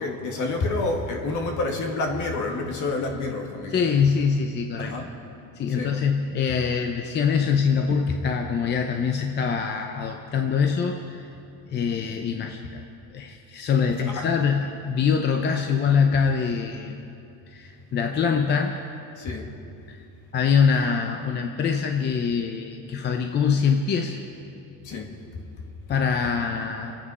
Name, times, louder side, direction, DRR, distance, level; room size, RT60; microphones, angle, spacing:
voice 1, 0.0-3.8 4.8-5.1 5.7-6.0 14.0-14.3 19.2-19.5 24.8-25.2, left 3 dB, 55° left, 2 dB, 2.1 m, -28 dB
voice 2, 3.7-4.9 5.6-11.3 11.7-12.8 13.1-17.0 17.5-18.8 19.9-20.0 20.3-24.2 25.9-27.0, left 6 dB, 30° left, 4 dB, 0.7 m, -24 dB
25.5 x 8.8 x 5.5 m, 2.7 s
cardioid pair, 160°, 36 cm